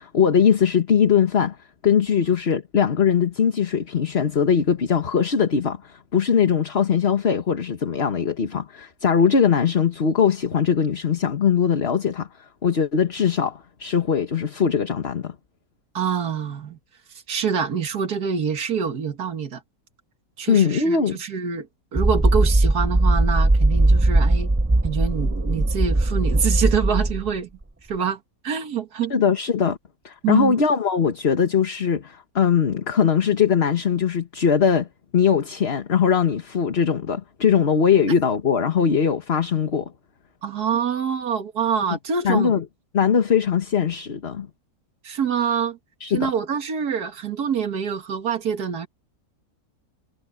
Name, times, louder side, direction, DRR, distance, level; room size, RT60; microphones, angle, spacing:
voice 1, 0.0-1.6 1.8-12.3 12.6-15.3 20.5-21.2 29.1-29.8 30.0-34.9 35.1-39.9 42.2-42.6 42.9-44.5 46.0-46.3, left 7 dB, 45° left, 1.5 m, -20 dB
voice 2, 15.9-16.8 17.3-19.6 20.4-21.7 21.9-24.5 24.8-27.5 27.9-29.1 30.2-30.6 40.4-42.5 45.0-45.8 46.1-48.9, right 7 dB, 90° right, 2.1 m, -25 dB
sound 1, 22.0-27.3, right 2 dB, 20° right, 0.3 m, -19 dB
omnidirectional pair, 1.6 m